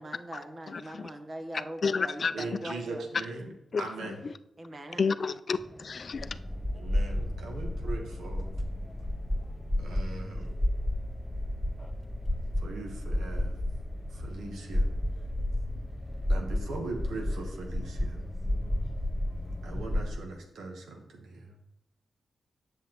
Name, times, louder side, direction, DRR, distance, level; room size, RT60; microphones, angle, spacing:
voice 1, 0.0-3.1 4.6-5.1, right 1 dB, 45° right, 6 dB, 1.0 m, -41 dB
voice 2, 0.7-1.1 1.8-2.3 3.7-4.1 5.0-6.4, left 5 dB, 55° left, 13 dB, 0.3 m, -30 dB
voice 3, 2.3-3.5 3.8-4.2 6.7-8.6 9.8-10.5 12.6-13.6 14.1-14.9 16.3-18.2 19.6-21.6, right 3 dB, 90° right, 2 dB, 1.1 m, -40 dB
sound 1, 5.5-19.7, equal, 5° left, 0.7 m, -48 dB
sound 2, 6.1-20.2, left 1 dB, 15° right, 1.5 m, -32 dB
7.7 x 6.9 x 3.0 m, 0.89 s
cardioid pair, 55°, 0 cm